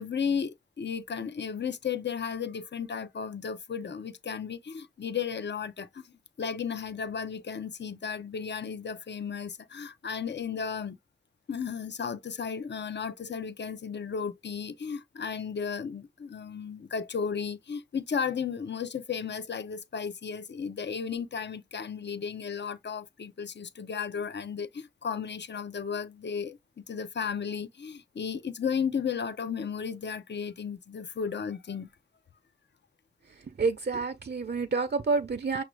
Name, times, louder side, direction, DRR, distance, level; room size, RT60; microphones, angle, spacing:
voice 1, 0.0-11.0 11.5-31.9, left 6 dB, 70° left, 0.5 m, -34 dB
voice 2, 33.5-35.6, right 4 dB, 60° right, 0.5 m, -28 dB
6.0 x 2.4 x 3.2 m
wide cardioid pair, 55°, 19 cm